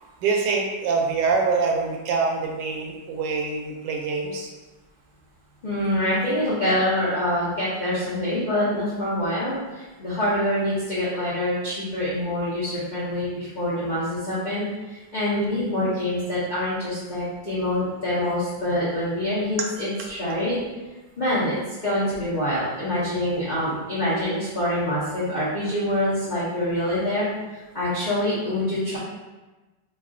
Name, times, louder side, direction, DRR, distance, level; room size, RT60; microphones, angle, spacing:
voice 1, 0.2-4.5 19.6-19.7, right 4 dB, 75° right, 1 dB, 1.2 m, -25 dB
voice 2, 5.6-20.6 21.2-27.3 27.7-29.0, left 1 dB, 55° left, -10 dB, 0.4 m, -25 dB
3.1 x 2.4 x 3.6 m, 1.2 s
omnidirectional pair, 2.0 m